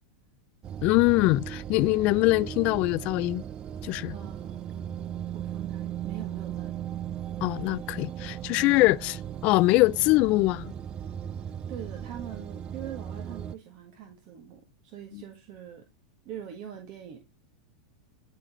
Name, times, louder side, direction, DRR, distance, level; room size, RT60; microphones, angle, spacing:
sound 1, 0.6-13.5, right 10 dB, 30° right, 0.4 m, -37 dB
voice 1, 0.8-3.4 3.8-4.1 7.4-10.7 15.1-15.2, left 20 dB, 50° left, 0.4 m, -23 dB
voice 2, 4.1-4.6 5.3-6.8 11.4-15.9 16.2-17.2, right 10 dB, 50° right, 1.5 m, -43 dB
10.5 x 4.2 x 3.0 m
hypercardioid pair, 115°, 3 cm